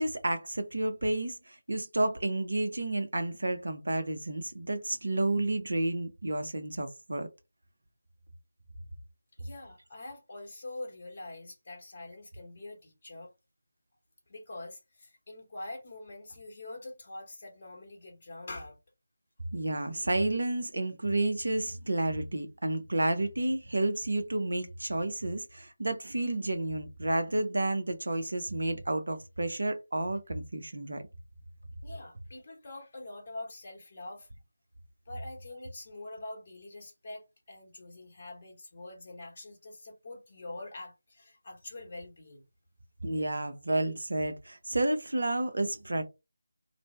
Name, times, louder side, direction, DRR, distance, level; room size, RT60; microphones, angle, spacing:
voice 1, 0.0-7.3 19.5-31.0 43.0-46.0, right 2 dB, 55° right, 0.6 m, -31 dB
voice 2, 9.4-13.3 14.3-18.8 31.8-34.3 35.1-42.4, left 2 dB, 30° left, 1.0 m, -44 dB
2.6 x 2.1 x 3.1 m
figure-of-eight pair, 160°, 0 cm